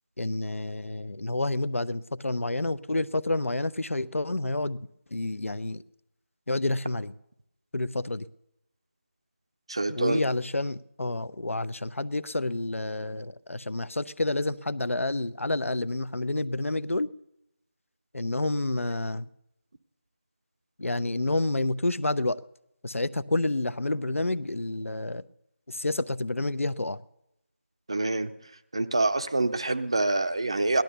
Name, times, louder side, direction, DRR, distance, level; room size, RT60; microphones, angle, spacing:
voice 1, 0.2-4.8 5.1-5.8 6.5-7.1 7.7-8.3 9.9-17.1 18.1-19.3 20.8-22.4 22.8-25.3 25.7-27.0, left 2 dB, 85° left, 0.8 m, -29 dB
voice 2, 9.7-10.2 27.9-28.3 28.7-30.8, right 2 dB, 25° right, 0.5 m, -26 dB
17.0 x 12.0 x 6.8 m
figure-of-eight pair, 175°, 7 cm